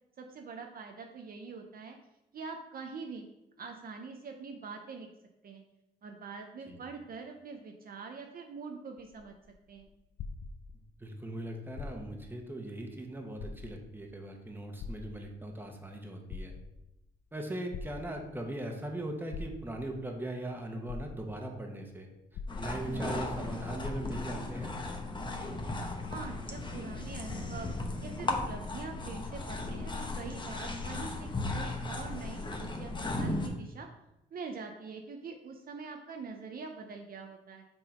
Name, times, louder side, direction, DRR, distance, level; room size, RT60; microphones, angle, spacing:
voice 1, 0.2-2.0 2.3-3.3 3.6-5.1 5.4-5.6 6.0-9.3 9.7-9.9 26.1-27.7 28.0-33.9 34.3-37.6, right 4 dB, 45° right, 3 dB, 0.7 m, -44 dB
sound 1, 9.0-11.1 11.7-12.3 12.8-12.9 13.3-14.0 14.8-15.6 16.1-17.0 17.7-18.5 19.3-20.0 20.5-20.6 20.9-21.6 22.3-23.2 23.4-23.5 23.8-24.4 25.2-25.3, left 4 dB, 65° left, 0.6 m, -43 dB
voice 2, 11.0-16.5 17.3-22.1 22.6-24.8, right 1 dB, 10° right, 2 dB, 1.2 m, -39 dB
sound 2, 22.5-33.5, left 2 dB, 25° left, 1.0 m, -36 dB
5.9 x 3.8 x 5.0 m, 0.89 s
cardioid pair, 90°, 20 cm